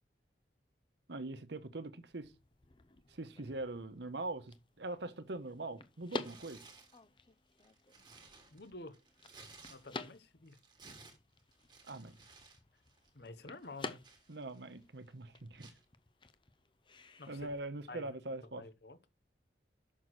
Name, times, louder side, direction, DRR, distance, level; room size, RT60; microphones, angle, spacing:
voice 1, 1.1-2.3 3.1-6.7 11.9-12.2 14.3-15.7 17.3-18.7, right 2 dB, 70° right, 1.0 m, -42 dB
sound 1, 2.1-17.6, left 3 dB, 25° left, 0.6 m, -51 dB
Tearing, 6.2-7.0 7.5-10.2 10.5-12.6 12.9-13.1 13.6-14.8 15.6-15.8, right 4 dB, 25° right, 1.6 m, -58 dB
voice 2, 8.5-8.9 9.7-10.6 13.1-14.0 17.2-17.5 17.9-18.1 18.6-19.0, left 2 dB, 60° left, 1.0 m, -49 dB
6.5 x 6.2 x 6.3 m
head